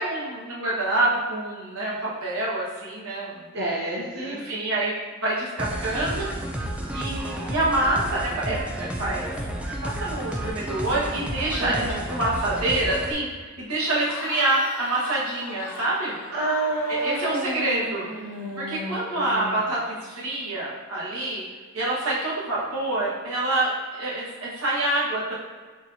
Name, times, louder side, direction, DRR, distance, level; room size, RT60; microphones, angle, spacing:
voice 1, 0.0-3.4 4.1-6.3 6.9-9.3 9.8-16.2 16.9-18.1 18.6-21.4 21.7-25.4, right 2 dB, 80° right, -7 dB, 1.4 m, -26 dB
voice 2, 3.5-4.4 11.6-12.0 16.3-19.5, right 2 dB, 50° right, -7 dB, 0.8 m, -29 dB
sound 1, 5.6-13.1, right 1 dB, 5° right, 0.3 m, -31 dB
Cheering / Crowd, 13.9-18.6, left 4 dB, 85° left, 0.6 m, -39 dB
4.6 x 4.1 x 2.6 m, 1.5 s
head